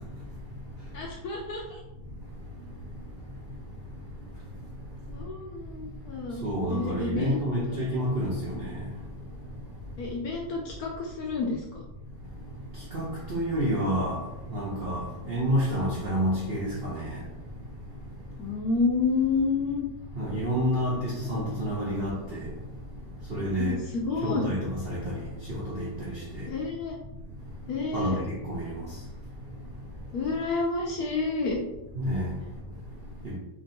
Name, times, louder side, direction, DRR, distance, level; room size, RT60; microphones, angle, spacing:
voice 1, 0.9-1.8 5.1-6.4 6.7-7.8 10.0-11.8 18.4-19.9 23.6-23.8 24.1-24.4 26.5-27.0 27.7-28.2 30.1-31.6, left 4 dB, 70° left, 0.9 m, -29 dB
voice 2, 6.4-8.6 12.9-14.2 14.5-17.2 20.2-22.5 23.3-23.8 24.2-25.1 25.5-26.4 27.9-28.2 28.5-28.6 32.0-32.3 33.2-33.3, equal, 70° right, 0.5 m, -29 dB
3.5 x 3.1 x 2.6 m
omnidirectional pair, 2.0 m